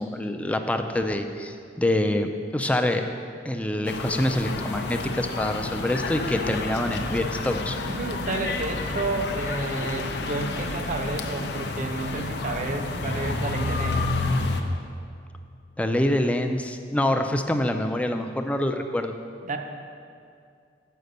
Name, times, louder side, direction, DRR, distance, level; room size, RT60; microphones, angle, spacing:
voice 1, 0.0-3.1 3.4-7.8 15.8-19.1, left 1 dB, 5° left, 6 dB, 0.3 m, -26 dB
sound 1, 3.9-14.6, left 3 dB, 65° left, 0.5 m, -30 dB
voice 2, 7.9-14.1 19.4-19.6, right 2 dB, 45° right, 5 dB, 0.5 m, -31 dB
6.7 x 5.0 x 6.5 m, 2.3 s
head